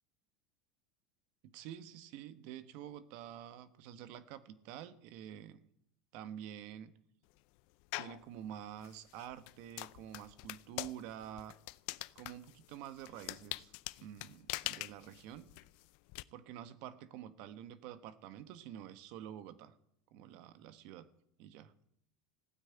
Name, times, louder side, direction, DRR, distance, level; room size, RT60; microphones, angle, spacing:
voice 1, 1.4-5.6 6.1-6.9 8.0-11.6 12.1-13.7 14.0-15.5 16.3-19.8 20.1-21.1 21.4-21.7, right 10 dB, 60° right, 13 dB, 1.2 m, -48 dB
sound 1, 7.9-8.2 8.8-16.2, left 23 dB, 60° left, 0.5 m, -44 dB
15.5 x 9.6 x 8.9 m, 0.74 s
supercardioid pair, 140°, 2 cm